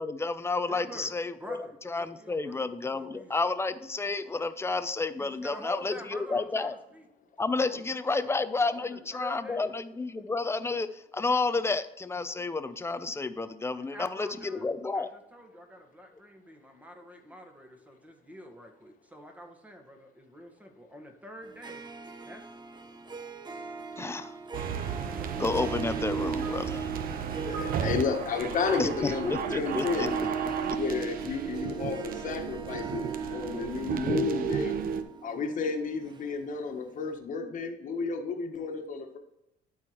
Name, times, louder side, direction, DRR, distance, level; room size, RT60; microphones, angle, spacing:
voice 1, 0.0-1.6 1.8-6.8 7.4-15.1 24.0-24.3 25.4-26.8 28.8-30.1 30.7-30.8, left 3 dB, 15° left, 11 dB, 0.5 m, -31 dB
voice 2, 0.7-1.1 1.4-3.3 5.2-7.0 7.6-8.4 8.7-9.7 13.7-14.6 14.9-21.9 22.2-22.4, equal, 10° right, 3 dB, 1.5 m, -47 dB
Harp, 21.4-36.8, right 5 dB, 25° right, 0.8 m, -38 dB
sound 1, 24.5-35.0, right 7 dB, 60° right, 0.7 m, -34 dB
sound 2, 26.4-31.9, right 3 dB, 75° right, 1.2 m, -46 dB
voice 3, 27.4-30.1 30.7-34.7 35.2-39.2, left 5 dB, 50° left, 4 dB, 1.4 m, -32 dB
12.0 x 4.7 x 3.1 m, 0.89 s
cardioid pair, 110°, 17 cm